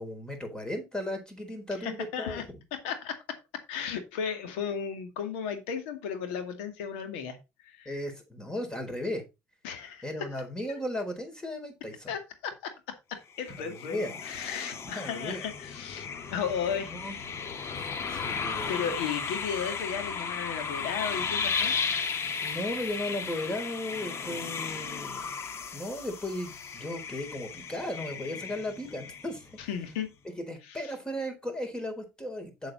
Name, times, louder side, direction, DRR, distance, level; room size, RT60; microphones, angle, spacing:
voice 1, 0.0-2.6 7.9-9.2 10.0-12.1 13.6-14.2 15.0-15.4 16.9-17.2 17.8-19.0 22.4-25.4 25.7-29.6 30.4-32.7, left 1 dB, 10° left, 4.1 m, -36 dB
voice 2, 1.8-2.4 2.8-3.2 3.7-7.4 7.6-7.9 9.6-10.0 10.7-10.8 12.1-17.2 17.6-17.7 18.7-21.7 29.6-30.1 30.7-30.9, left 7 dB, 85° left, 2.1 m, -35 dB
sound 1, 13.3-29.6, left 5 dB, 45° left, 1.5 m, -35 dB
7.7 x 7.1 x 4.1 m
supercardioid pair, 80°, 6 cm